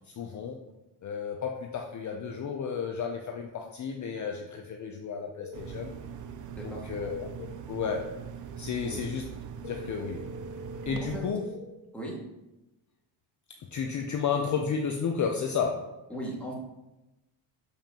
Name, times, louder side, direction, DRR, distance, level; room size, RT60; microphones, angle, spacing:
voice 1, 0.1-0.6 1.0-5.9 6.6-8.2 8.6-9.3 9.7-10.3 10.9-11.5 13.7-15.9, left 6 dB, 40° left, 3 dB, 0.6 m, -32 dB
sound 1, 5.4-5.7 9.6-11.6, left 3 dB, 75° left, 0.8 m, -43 dB
sound 2, 5.5-11.2, right 7 dB, 45° right, 0.5 m, -41 dB
voice 2, 16.1-16.5, right 1 dB, 5° left, -5 dB, 1.9 m, -38 dB
7.0 x 5.7 x 2.9 m, 0.99 s
cardioid pair, 120°, 44 cm